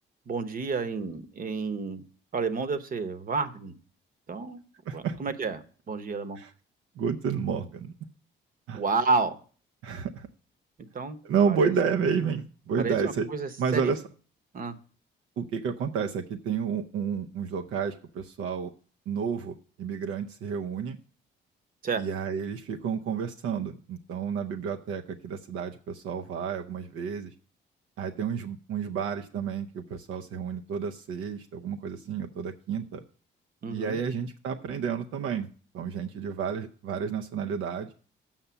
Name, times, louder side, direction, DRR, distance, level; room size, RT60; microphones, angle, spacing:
voice 1, 0.3-2.0 2.3-3.8 4.3-4.6 4.9-6.4 8.7-9.4 10.9-11.2 11.5-11.7 12.8-13.9 14.5-14.8 21.8-22.0 33.6-34.0, right 4 dB, 45° right, 11 dB, 1.0 m, -30 dB
voice 2, 4.9-5.2 6.4-6.5 7.0-7.9 8.7-8.8 9.8-10.3 11.2-13.3 13.6-14.0 15.4-18.7 19.1-21.0 22.0-27.3 28.0-33.0 33.7-35.5 35.7-37.9, right 6 dB, 85° right, 4 dB, 0.6 m, -30 dB
7.4 x 5.5 x 6.8 m, 0.42 s
cardioid pair, 90°, 20 cm